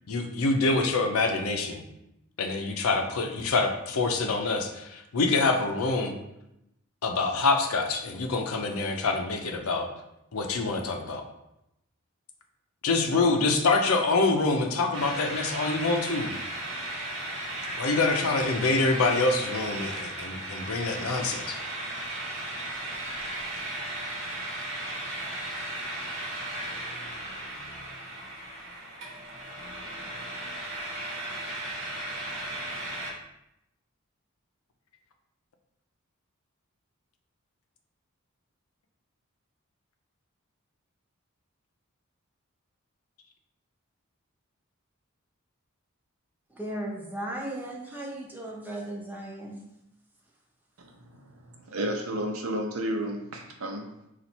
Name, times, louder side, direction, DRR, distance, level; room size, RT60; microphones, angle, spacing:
voice 1, 0.1-1.8 2.4-6.1 7.0-9.9 10.3-11.2 12.8-16.4 17.8-21.6, left 3 dB, 85° left, 4 dB, 0.6 m, -26 dB
sound 1, 14.9-33.1, right 1 dB, 60° right, 1.1 m, -36 dB
voice 2, 46.6-49.6, right 1 dB, 10° right, -2 dB, 0.7 m, -36 dB
voice 3, 50.8-53.9, right 1 dB, 80° right, 2 dB, 0.7 m, -32 dB
4.1 x 2.5 x 4.3 m, 0.85 s
head